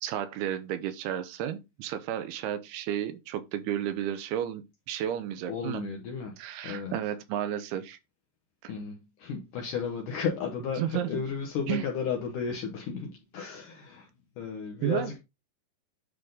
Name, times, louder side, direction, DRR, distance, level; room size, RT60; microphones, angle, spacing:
voice 1, 0.0-5.8 6.4-8.0 8.6-8.7 10.8-11.2 11.7-11.9 14.8-15.1, right 10 dB, 90° right, 2.7 m, -32 dB
voice 2, 5.5-6.4 6.6-7.0 8.7-14.1 14.4-15.2, left 6 dB, 70° left, 2.3 m, -34 dB
10.0 x 3.6 x 3.9 m
omnidirectional pair, 4.4 m